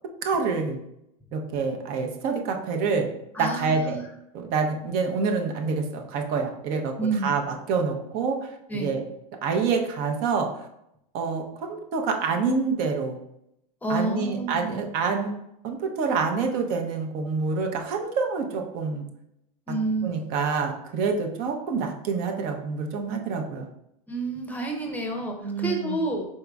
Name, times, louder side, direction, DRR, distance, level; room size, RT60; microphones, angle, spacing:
voice 1, 0.2-0.8 1.3-3.1 3.4-4.0 4.3-9.0 9.4-10.5 11.1-13.2 13.9-15.3 15.6-19.1 19.7-19.8 20.0-23.7 25.4-26.0, right 5 dB, 55° right, 3 dB, 0.7 m, -27 dB
voice 2, 3.3-4.0 7.0-7.3 8.7-8.9 13.8-14.8 19.7-20.1 24.1-26.2, right 2 dB, 10° left, 2 dB, 0.7 m, -29 dB
4.7 x 4.0 x 2.3 m, 0.80 s
supercardioid pair, 125°, 18 cm